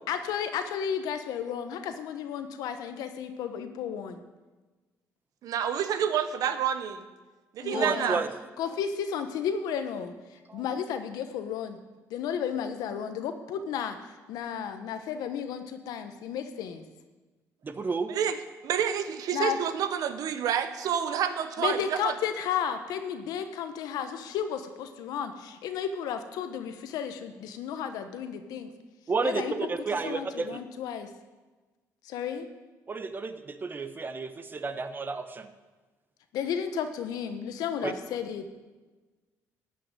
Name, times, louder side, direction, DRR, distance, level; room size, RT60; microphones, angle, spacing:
voice 1, 0.1-4.2 7.6-8.2 8.6-11.8 12.1-16.8 19.3-19.6 21.6-28.7 29.2-29.5 30.0-31.1 32.0-32.5 36.3-38.5, left 8 dB, 80° left, 8 dB, 1.1 m, -33 dB
voice 2, 5.4-7.1 7.5-8.2 18.1-18.4 18.6-22.1, right 8 dB, 70° right, 10 dB, 1.0 m, -28 dB
voice 3, 7.7-8.3 8.7-8.8 10.5-10.6 17.6-18.1 29.1-30.6 32.9-35.5 37.8-37.9, right 4 dB, 30° right, 10 dB, 1.0 m, -31 dB
12.5 x 5.9 x 8.9 m, 1.3 s
cardioid pair, 90°, 6 cm